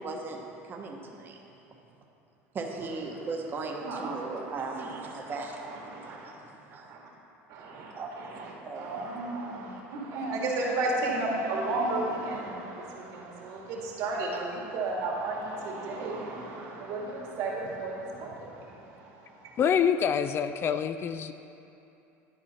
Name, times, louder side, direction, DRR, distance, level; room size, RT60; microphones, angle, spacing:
voice 1, 0.0-1.4 2.5-5.7 6.0-7.0 7.8-9.1 14.3-14.4, right 3 dB, 30° right, 0 dB, 1.0 m, -38 dB
voice 2, 3.8-5.1 5.8-6.3 6.9-7.0 7.5-18.8 19.4-19.5, right 2 dB, 65° right, -2 dB, 1.9 m, -33 dB
voice 3, 19.6-21.3, left 7 dB, 35° left, 10 dB, 0.3 m, -26 dB
12.0 x 4.8 x 4.2 m, 2.8 s
supercardioid pair, 105°, 7 cm